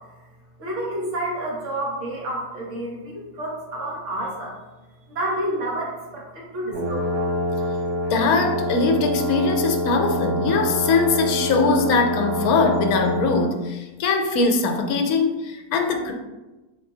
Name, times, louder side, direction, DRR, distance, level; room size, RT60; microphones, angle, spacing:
voice 1, 0.6-4.6 5.1-7.2, right 1 dB, 60° right, -3 dB, 1.2 m, -29 dB
sound 1, 6.7-13.5, equal, 85° right, 1.4 m, -26 dB
voice 2, 8.1-16.1, left 4 dB, 80° left, 4 dB, 1.1 m, -21 dB
4.1 x 3.8 x 2.7 m, 1.1 s
omnidirectional pair, 1.6 m